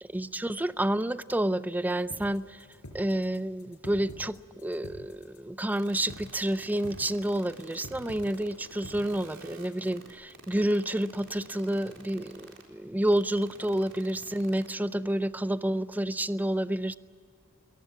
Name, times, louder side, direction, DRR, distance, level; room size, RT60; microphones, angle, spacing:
voice 1, 0.0-2.7 2.9-16.9, right 1 dB, 10° right, 0.5 m, -29 dB
sound 1, 2.1-10.1, equal, 90° left, 5.2 m, -47 dB
sound 2, 5.8-12.6 13.0-14.7, right 4 dB, 60° right, 4.0 m, -48 dB
22.0 x 19.0 x 8.9 m
head